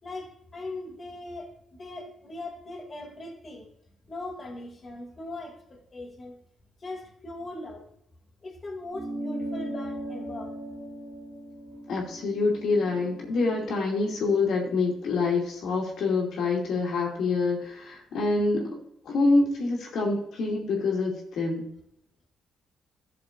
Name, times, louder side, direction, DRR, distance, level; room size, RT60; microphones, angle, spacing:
voice 1, 0.0-3.7 4.1-6.4 6.8-7.8 8.4-10.5, left 2 dB, 30° left, -1 dB, 2.6 m, -40 dB
sound 1, 8.9-13.7, right 1 dB, 60° right, 3.5 m, -38 dB
voice 2, 11.9-18.8 19.0-21.7, left 3 dB, 70° left, -3 dB, 2.6 m, -26 dB
12.5 x 6.5 x 2.7 m, 0.76 s
cardioid pair, 90°, 0 cm